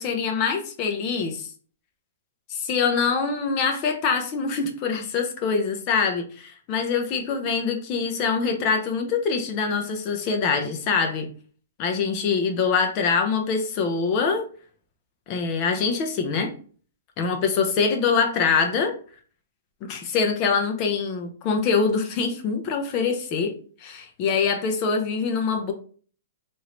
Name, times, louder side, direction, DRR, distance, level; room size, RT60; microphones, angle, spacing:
voice 1, 0.0-1.5 2.5-11.3 11.8-14.5 15.3-16.5 17.2-18.9 19.8-23.5 23.8-25.7, left 5 dB, 30° left, 4 dB, 0.7 m, -24 dB
4.8 x 2.7 x 3.1 m, 0.42 s
hypercardioid pair, 160°, 0 cm